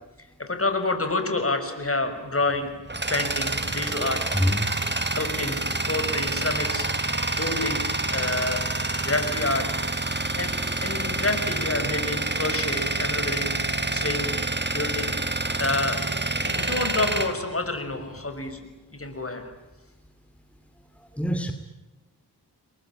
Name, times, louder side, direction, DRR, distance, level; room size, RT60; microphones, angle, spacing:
voice 1, 0.4-2.7 3.1-4.2 5.1-5.6 5.9-6.9 7.3-8.6 9.0-9.7 10.4-13.5 13.9-14.3 14.7-15.1 15.6-16.1 16.4-18.6 18.9-19.4, left 2 dB, 35° left, 7 dB, 6.2 m, -28 dB
Tools, 2.4-18.2, right 2 dB, 25° right, 3.1 m, -27 dB
voice 2, 3.8-5.0 21.2-21.5, equal, 5° left, 7 dB, 2.6 m, -27 dB
29.5 x 22.0 x 9.0 m, 1.1 s
wide cardioid pair, 75°, 40 cm